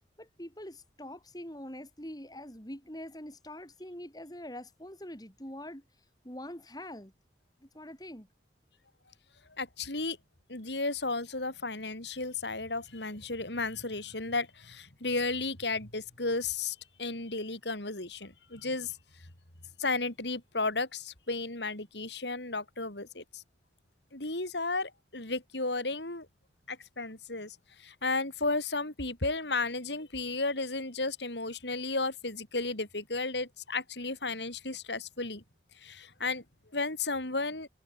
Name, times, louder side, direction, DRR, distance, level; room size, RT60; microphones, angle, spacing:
voice 1, 0.2-5.8 6.2-7.1 7.6-8.3, left 1 dB, 20° left, 6.2 m, -44 dB
voice 2, 9.6-10.2 10.5-19.0 19.8-23.4 24.1-26.3 26.7-35.4 35.8-36.4 36.7-37.7, left 3 dB, 80° left, 5.5 m, -34 dB
head